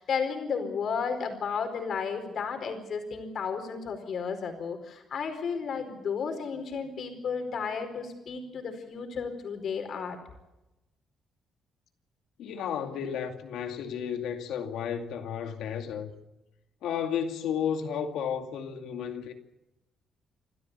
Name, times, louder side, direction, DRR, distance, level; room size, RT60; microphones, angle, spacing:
voice 1, 0.0-10.2, left 6 dB, 60° left, 4.6 m, -33 dB
voice 2, 12.4-16.1 16.8-19.3, left 8 dB, 80° left, 2.4 m, -33 dB
28.5 x 12.5 x 8.4 m
cardioid pair, 90°, 0 cm